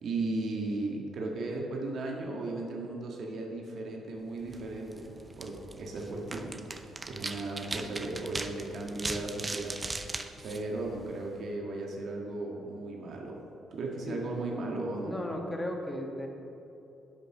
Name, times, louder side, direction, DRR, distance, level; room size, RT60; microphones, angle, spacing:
voice 1, 0.0-6.5 7.1-9.8 10.4-13.4 13.7-15.1, right 2 dB, 60° right, 0 dB, 1.7 m, -36 dB
sound 1, 4.4-11.4, right 3 dB, 25° right, 0.7 m, -40 dB
voice 2, 15.0-16.3, left 1 dB, 20° left, 1 dB, 1.7 m, -36 dB
11.0 x 5.7 x 6.6 m, 2.9 s
cardioid pair, 90°, 0 cm